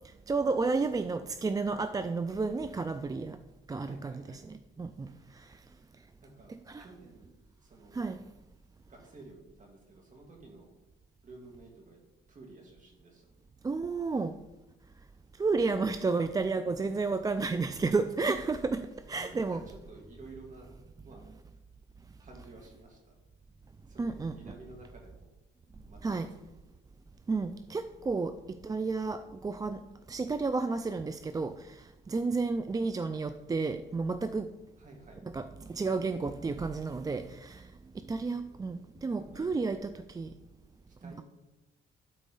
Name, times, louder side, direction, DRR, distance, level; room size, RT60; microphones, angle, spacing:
voice 1, 0.3-3.4 3.7-5.1 6.7-6.9 7.9-8.2 13.6-14.4 15.4-19.6 24.0-24.4 26.0-26.3 27.3-29.8 30.1-31.8 32.1-34.5 35.2-37.6 38.1-40.3 41.0-41.2, right 4 dB, 20° right, 10 dB, 0.3 m, -32 dB
voice 2, 3.8-4.4 6.2-6.5 6.8-7.3 7.6-8.2 8.9-10.7 11.2-12.0 12.3-13.3 18.9-21.6 22.2-23.1 23.9-25.3 25.9-26.0 26.4-26.5 34.8-35.2 39.2-39.6 40.9-41.2, right 3 dB, 40° right, 0 dB, 2.7 m, -52 dB
12.5 x 4.1 x 3.8 m, 1.0 s
cardioid pair, 90°, 20 cm